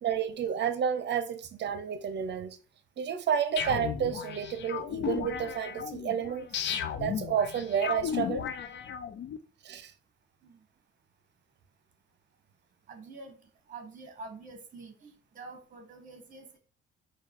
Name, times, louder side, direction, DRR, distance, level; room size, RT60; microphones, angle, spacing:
voice 1, 0.0-2.6 3.0-6.5 7.0-8.5 9.6-9.9, right 8 dB, 60° right, 0.7 m, -30 dB
sound 1, 3.6-9.4, left 8 dB, 65° left, 0.6 m, -35 dB
voice 2, 12.9-13.4 13.7-16.6, right 3 dB, 40° right, 1.2 m, -47 dB
4.7 x 2.3 x 4.5 m
cardioid pair, 90°, 20 cm